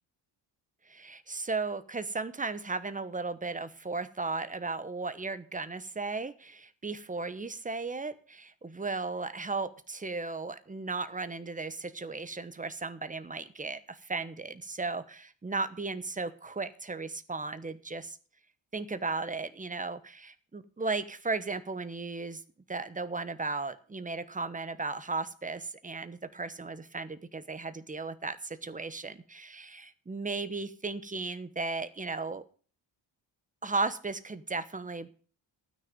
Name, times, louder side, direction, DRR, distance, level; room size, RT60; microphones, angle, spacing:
voice 1, 0.9-18.2 18.7-22.4 22.7-32.4 33.6-35.1, right 3 dB, 15° right, 12 dB, 1.1 m, -35 dB
12.5 x 9.9 x 5.3 m, 0.41 s
cardioid pair, 135°, 46 cm